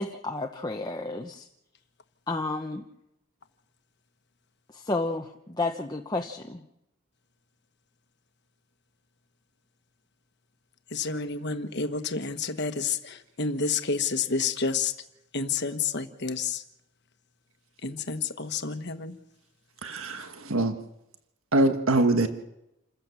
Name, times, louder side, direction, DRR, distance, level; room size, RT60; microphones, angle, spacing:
voice 1, 0.0-1.5 2.3-2.8 4.7-6.6, left 2 dB, 20° left, 3 dB, 0.9 m, -31 dB
voice 2, 10.9-14.9 15.3-16.6 17.8-19.2, left 5 dB, 50° left, 9 dB, 1.4 m, -29 dB
voice 3, 19.8-20.8 21.5-22.3, right 2 dB, 70° right, 8 dB, 1.6 m, -23 dB
28.0 x 15.0 x 7.2 m, 0.87 s
head